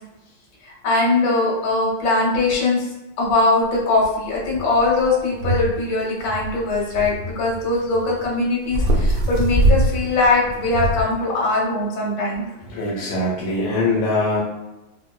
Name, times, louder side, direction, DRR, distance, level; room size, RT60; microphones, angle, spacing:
voice 1, 0.6-2.9 3.2-12.4, left 2 dB, 65° left, -4 dB, 1.6 m, -21 dB
sound 1, 3.7-3.8 4.3-5.7 6.0-8.3 8.6-11.0, right 1 dB, 70° right, 1.0 m, -22 dB
voice 2, 12.6-14.4, left 2 dB, 80° left, -5 dB, 1.5 m, -22 dB
4.3 x 2.1 x 2.2 m, 0.99 s
omnidirectional pair, 2.4 m